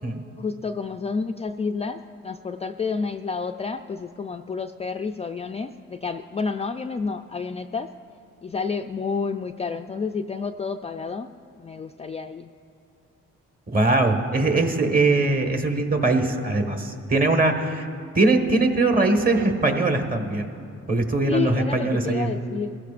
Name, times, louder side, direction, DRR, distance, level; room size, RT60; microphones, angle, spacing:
voice 1, 0.4-7.9 8.4-11.3 11.6-12.5 21.3-22.8, left 5 dB, 20° left, 6 dB, 0.4 m, -30 dB
voice 2, 13.7-17.9 18.1-20.5 20.9-22.3, right 2 dB, 30° right, 5 dB, 1.5 m, -21 dB
23.0 x 15.0 x 2.5 m, 2.5 s
cardioid pair, 90°, 30 cm